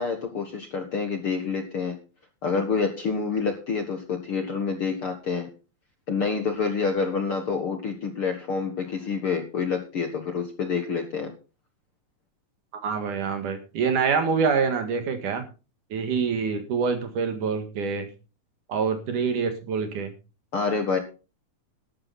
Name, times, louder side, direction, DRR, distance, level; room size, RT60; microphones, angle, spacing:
voice 1, 0.0-2.0 2.4-5.5 6.1-11.3 20.5-21.0, left 5 dB, 50° left, 5 dB, 1.7 m, -27 dB
voice 2, 12.8-15.4 15.9-18.1 18.7-20.1, right 5 dB, 60° right, 7 dB, 3.2 m, -26 dB
12.5 x 12.0 x 4.1 m, 0.33 s
omnidirectional pair, 4.2 m